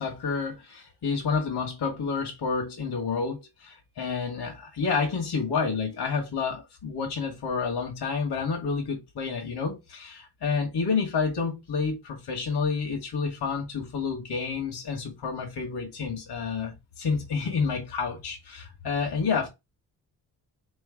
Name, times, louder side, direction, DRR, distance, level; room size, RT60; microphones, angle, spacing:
voice 1, 0.0-19.5, left 5 dB, 75° left, 1.5 m, -29 dB
3.7 x 3.2 x 3.7 m
cardioid pair, 110°, 40 cm